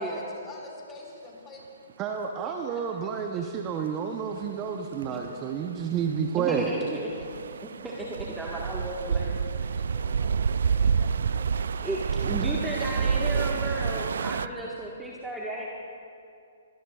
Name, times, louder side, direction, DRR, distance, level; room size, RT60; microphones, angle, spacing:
voice 1, 0.0-1.6 2.4-3.5 5.1-5.4 7.1-8.0 8.3-11.9 14.2-14.8, left 2 dB, 20° left, -1 dB, 4.1 m, -48 dB
voice 2, 2.0-6.7, right 7 dB, 25° right, 4 dB, 0.8 m, -30 dB
sound 1, 4.4-4.5 5.0-5.1 5.5-14.5, right 6 dB, 70° right, 0.3 m, -28 dB
voice 3, 6.4-7.1 7.6-9.3 11.8-15.7, right 1 dB, 5° right, -5 dB, 1.5 m, -33 dB
23.0 x 20.0 x 2.4 m, 2.5 s
figure-of-eight pair, 130°, 0 cm